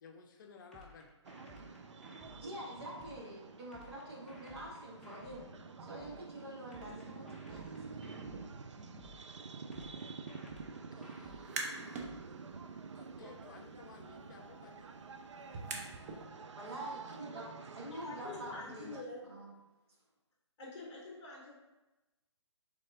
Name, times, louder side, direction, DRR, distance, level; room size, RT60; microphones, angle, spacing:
voice 1, 0.0-1.1 10.9-11.7 12.9-14.9, left 4 dB, 40° left, 4 dB, 0.6 m, -55 dB
sound 1, 0.7-3.2 3.7-6.2 6.7-9.2 9.7-12.2, left 1 dB, 5° left, 0.6 m, -56 dB
sound 2, 1.2-19.0, right 4 dB, 75° right, 0.4 m, -49 dB
voice 2, 2.4-5.5 5.8-7.7 16.5-18.9 19.3-19.6, right 1 dB, 60° right, -5 dB, 1.5 m, -46 dB
sound 3, 11.3-12.1 12.5-16.2, right 3 dB, 35° right, 0.7 m, -45 dB
voice 3, 17.8-19.5 20.6-21.5, left 3 dB, 20° left, -3 dB, 1.0 m, -46 dB
3.9 x 3.5 x 3.6 m, 1.0 s
figure-of-eight pair, 140°, 15 cm